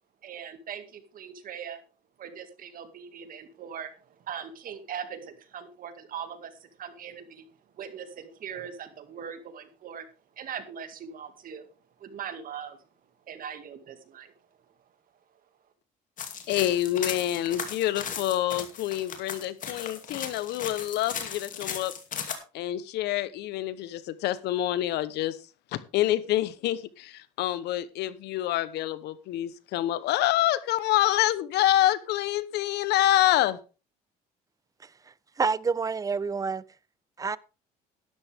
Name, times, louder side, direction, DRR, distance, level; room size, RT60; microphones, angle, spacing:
voice 1, 0.2-1.8 2.2-7.5 7.7-10.1 10.4-11.7 12.0-12.8 13.3-14.3, right 8 dB, 55° right, 2.2 m, -40 dB
sound 1, 16.2-22.3, left 7 dB, 50° left, 2.6 m, -37 dB
voice 2, 16.5-21.9 22.5-25.4 25.7-33.6, left 14 dB, 80° left, 1.0 m, -27 dB
voice 3, 35.4-36.6 37.2-37.4, right 5 dB, 20° right, 0.5 m, -28 dB
12.5 x 11.0 x 3.6 m
cardioid pair, 110°, 17 cm